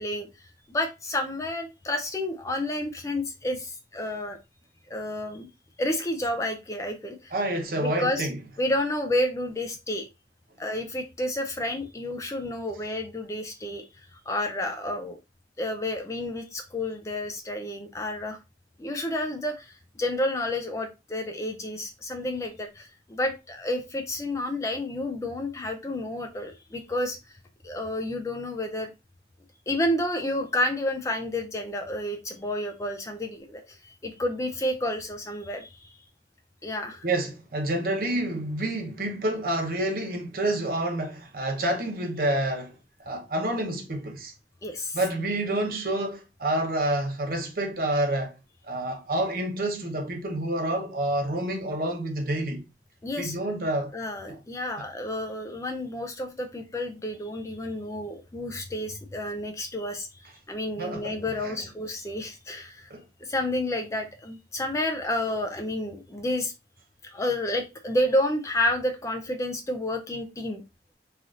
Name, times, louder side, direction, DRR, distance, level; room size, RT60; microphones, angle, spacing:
voice 1, 0.0-4.4 4.9-5.5 5.8-7.3 7.8-8.3 8.6-10.1 10.6-15.2 15.6-18.4 18.8-27.4 27.6-28.9 29.7-36.0 36.6-37.0 44.6-45.0 53.0-53.4 53.9-62.9 63.2-66.5 67.0-70.6, left 1 dB, 15° left, 0.3 m, -30 dB
voice 2, 7.3-8.4 37.0-42.7 43.0-44.3 44.9-48.3 48.6-52.6 53.2-53.9 54.3-54.4 60.8-61.6 62.9-63.0, right 1 dB, 55° right, 0.7 m, -28 dB
3.3 x 2.5 x 2.4 m
head